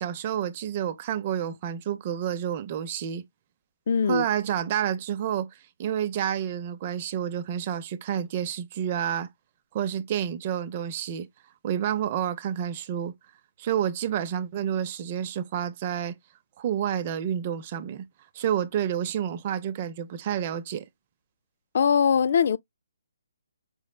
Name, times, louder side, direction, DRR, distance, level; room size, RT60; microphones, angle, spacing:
voice 1, 0.0-3.2 4.1-5.5 5.8-9.3 9.7-11.3 11.6-13.1 13.6-16.1 16.6-18.1 18.3-20.8, right 9 dB, 35° right, 0.6 m, -29 dB
voice 2, 3.9-4.3 21.7-22.6, left 7 dB, 55° left, 0.3 m, -21 dB
5.4 x 3.1 x 2.3 m
hypercardioid pair, 155°, 0 cm